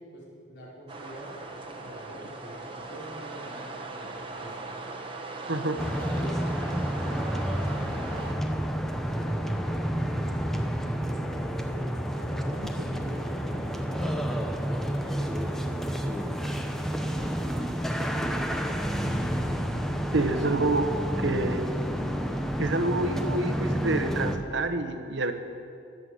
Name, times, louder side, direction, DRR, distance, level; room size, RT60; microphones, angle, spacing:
voice 1, 0.0-4.5 5.5-6.4 7.0-8.5 9.1-11.0 12.1-14.1 15.0-16.3, right 1 dB, 55° left, -7 dB, 4.6 m, -45 dB
sound 1, 0.9-8.3, right 3 dB, 25° right, 1.2 m, -39 dB
sound 2, 5.8-24.4, equal, ahead, 0.8 m, -30 dB
sound 3, 9.2-19.2, equal, 75° left, 2.2 m, -51 dB
voice 2, 20.1-20.9 21.2-21.7 22.6-25.3, right 2 dB, 65° right, 8 dB, 1.0 m, -27 dB
22.5 x 7.9 x 7.9 m, 2.6 s
head